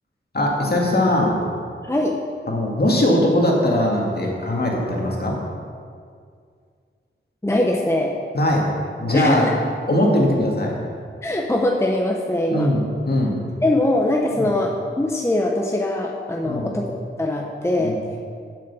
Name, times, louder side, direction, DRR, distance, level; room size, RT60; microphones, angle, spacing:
voice 1, 0.3-1.4 2.5-5.3 8.3-8.7 9.0-9.5 9.9-10.8 12.5-13.3 14.4-14.5 16.4-16.7 17.8-18.2, left 1 dB, 50° left, -2 dB, 2.0 m, -20 dB
voice 2, 1.8-2.2 7.4-8.2 9.1-9.5 11.2-12.7 13.6-18.0, left 1 dB, 15° left, 0 dB, 0.8 m, -22 dB
7.5 x 6.8 x 7.0 m, 2.2 s
wide cardioid pair, 70°, 21 cm